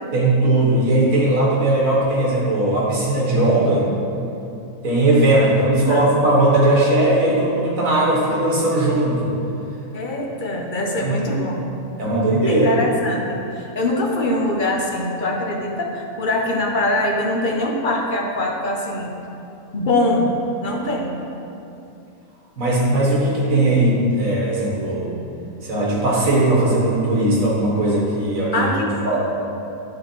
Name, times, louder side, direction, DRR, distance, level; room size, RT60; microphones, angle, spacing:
voice 1, 0.1-3.9 4.8-9.3 11.0-11.3 12.0-12.7 22.6-25.2 25.6-28.7 29.0-29.3, right 1 dB, 65° right, -5 dB, 2.0 m, -18 dB
voice 2, 5.7-6.0 9.9-11.7 12.4-19.1 19.7-20.3 20.6-21.2 28.5-29.0, left 1 dB, 45° left, 0 dB, 0.7 m, -23 dB
10.5 x 3.8 x 4.5 m, 2.8 s
omnidirectional pair, 1.5 m